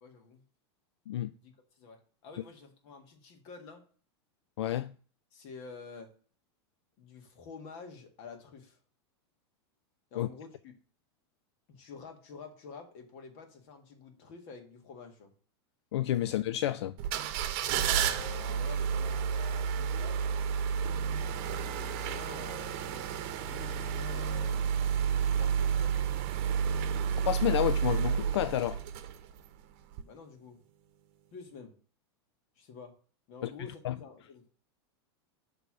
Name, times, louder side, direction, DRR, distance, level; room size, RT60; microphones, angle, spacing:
voice 1, 0.0-0.4 1.4-3.9 5.3-6.1 7.0-8.8 10.1-10.7 11.7-15.3 17.7-20.3 21.5-24.6 25.3-26.0 30.1-30.6 31.3-31.7 32.6-32.9 33.3-34.5, left 5 dB, 55° left, 1.8 m, -49 dB
voice 2, 4.6-4.9 10.2-10.3 15.9-16.9 27.3-28.8 33.4-33.5 33.8-33.9, left 13 dB, 90° left, 0.4 m, -30 dB
sound 1, 17.0-29.5 29.9-30.0, right 7 dB, 55° right, 0.9 m, -31 dB
6.7 x 3.4 x 6.2 m
supercardioid pair, 130°, 14 cm